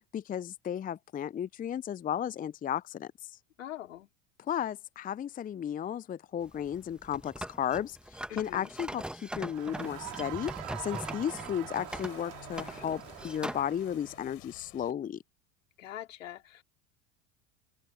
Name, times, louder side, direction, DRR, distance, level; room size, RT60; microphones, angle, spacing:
voice 1, 0.1-3.4 4.5-8.0 8.4-10.5 10.8-15.2, left 9 dB, 20° left, 0.7 m, -34 dB
voice 2, 3.6-4.1 8.3-8.7 15.8-16.6, left 12 dB, 70° left, 4.4 m, -43 dB
sound 1, 6.4-13.7, right 1 dB, ahead, 1.9 m, -41 dB
Crowd, 9.5-14.3, right 23 dB, 50° right, 4.0 m, -44 dB
sound 2, 9.7-14.9, left 35 dB, 55° left, 7.7 m, -53 dB
figure-of-eight pair, 75°, 39 cm